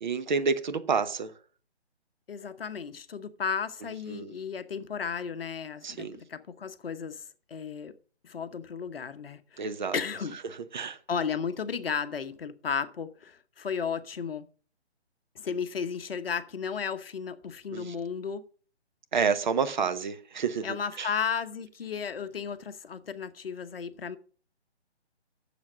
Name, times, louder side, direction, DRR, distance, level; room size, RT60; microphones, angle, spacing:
voice 1, 0.0-1.3 4.1-4.3 5.8-6.2 9.6-9.9 10.7-11.0 17.7-17.9 19.1-21.1, right 5 dB, 45° right, 0.9 m, -29 dB
voice 2, 2.3-7.2 7.5-7.9 8.2-9.6 9.9-10.4 11.1-14.4 15.3-18.4 20.6-24.2, left 6 dB, 60° left, 0.9 m, -34 dB
7.2 x 7.1 x 6.1 m
hypercardioid pair, 160°, 34 cm